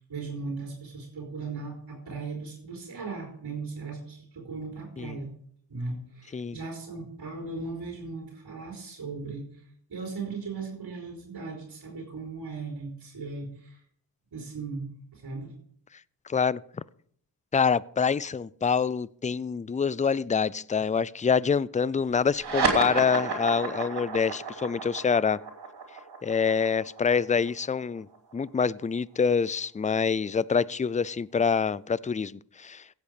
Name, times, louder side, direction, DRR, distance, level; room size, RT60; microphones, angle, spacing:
voice 1, 0.0-5.3 5.7-9.6 9.9-13.8 14.3-15.5, right 4 dB, 70° right, 4.2 m, -37 dB
voice 2, 16.3-16.6 17.5-25.4 26.2-28.1 28.3-32.8, left 6 dB, 20° left, 0.4 m, -26 dB
sound 1, 22.3-29.2, right 4 dB, 90° right, 3.1 m, -32 dB
16.5 x 8.2 x 5.1 m
cardioid pair, 60°, 39 cm